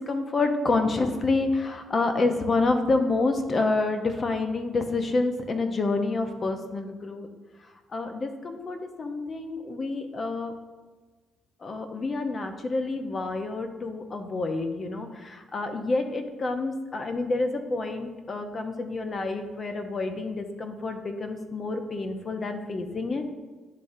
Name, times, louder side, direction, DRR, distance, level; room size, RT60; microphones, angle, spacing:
voice 1, 0.0-7.3 7.9-10.5 11.6-23.3, left 3 dB, 40° left, 6 dB, 0.8 m, -28 dB
10.5 x 3.6 x 2.7 m, 1.3 s
supercardioid pair, 60°, 0 cm